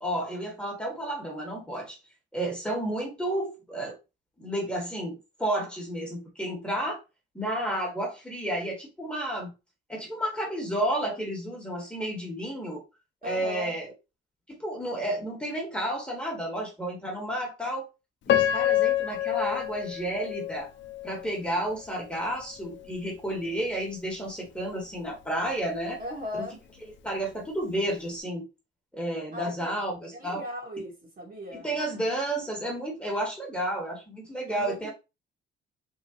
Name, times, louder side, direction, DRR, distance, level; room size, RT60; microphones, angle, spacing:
voice 1, 0.0-2.0 2.3-4.0 4.4-7.0 7.3-9.5 9.9-12.8 13.2-13.9 14.5-17.9 18.3-20.7 21.0-26.0 26.4-26.5 27.0-28.5 28.9-30.4 31.5-34.9, right 1 dB, 5° left, 1.6 m, -31 dB
voice 2, 13.2-13.8 26.0-26.6 29.3-29.7 30.1-31.8 34.5-34.9, left 1 dB, 45° right, 1.9 m, -37 dB
Piano, 18.3-21.3 21.9-22.0 22.6-22.8, left 11 dB, 70° left, 0.6 m, -27 dB
3.7 x 2.8 x 2.9 m
cardioid pair, 90°, 20 cm